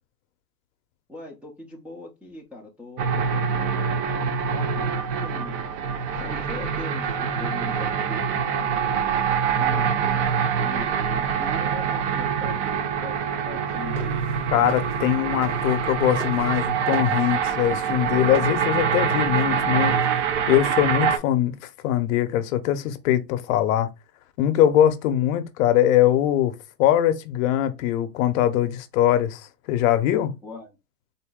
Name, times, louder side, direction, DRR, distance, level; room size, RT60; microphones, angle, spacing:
voice 1, 1.1-5.6 6.2-13.2 13.4-14.2 30.4-30.7, left 2 dB, 5° right, 0.5 m, -41 dB
sound 1, 3.0-21.2, right 7 dB, 45° right, 0.6 m, -25 dB
sound 2, 13.8-15.9 16.2-20.8, right 2 dB, 70° right, 2.5 m, -40 dB
voice 2, 14.5-20.0 20.5-23.9 24.4-30.3, left 11 dB, 55° left, 0.7 m, -22 dB
4.0 x 2.1 x 3.5 m
supercardioid pair, 130°, 48 cm